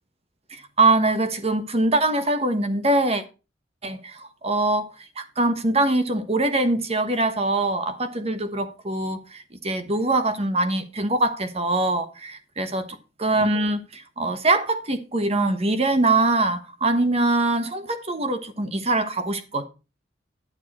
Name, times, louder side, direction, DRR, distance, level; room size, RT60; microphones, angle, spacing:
voice 1, 0.5-3.2 3.8-4.9 5.2-12.9 13.2-19.7, right 2 dB, 35° right, 1.2 m, -23 dB
11.0 x 7.3 x 4.3 m
head